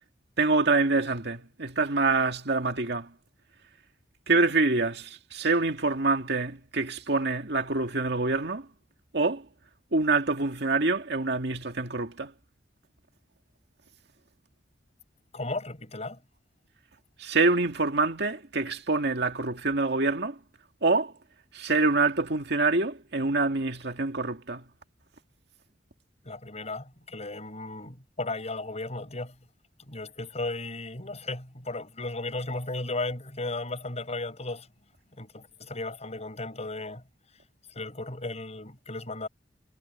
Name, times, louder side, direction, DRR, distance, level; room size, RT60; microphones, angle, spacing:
voice 1, 0.4-3.1 4.3-8.7 9.1-9.5 9.9-12.3 17.2-20.4 20.8-21.1 21.5-24.6, right 3 dB, 65° right, 2.1 m, -26 dB
voice 2, 15.3-16.2 26.3-29.3 29.9-34.7 35.2-37.0 37.8-39.3, left 2 dB, 40° left, 6.8 m, -35 dB
head